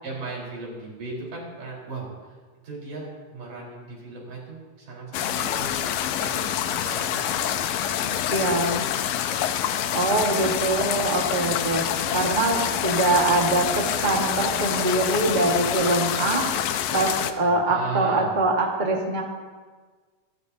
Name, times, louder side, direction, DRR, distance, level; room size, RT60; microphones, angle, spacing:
voice 1, 0.0-2.3 2.6-8.9 9.9-10.3 12.0-12.3 17.5-18.4, right 3 dB, 70° right, -4 dB, 5.8 m, -37 dB
sound 1, 5.1-17.3, left 10 dB, 90° left, 2.4 m, -26 dB
voice 2, 8.3-8.8 9.9-16.5 16.9-19.2, right 2 dB, 30° right, 0 dB, 0.9 m, -23 dB
27.5 x 12.5 x 2.8 m, 1.4 s
omnidirectional pair, 3.8 m